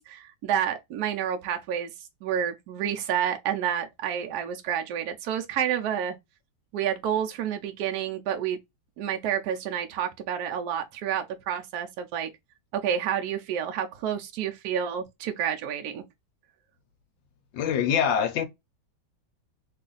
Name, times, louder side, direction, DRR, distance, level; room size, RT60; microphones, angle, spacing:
voice 1, 0.0-6.2 6.7-8.6 9.0-12.3 12.7-16.0, right 9 dB, 75° right, 0.9 m, -29 dB
voice 2, 17.5-18.5, left 8 dB, 75° left, 1.3 m, -24 dB
3.2 x 2.4 x 3.8 m
omnidirectional pair, 2.1 m